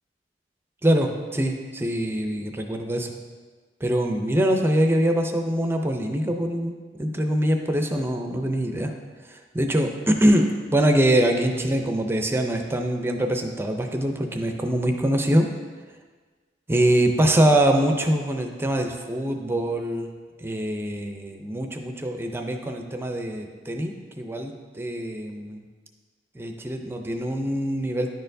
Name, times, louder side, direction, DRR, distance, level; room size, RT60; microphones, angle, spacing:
voice 1, 0.8-3.1 3.8-8.9 9.3-15.5 16.7-20.1 20.4-25.6 26.3-28.1, right 1 dB, 15° right, 4 dB, 0.4 m, -24 dB
10.5 x 4.4 x 2.6 m, 1.5 s
head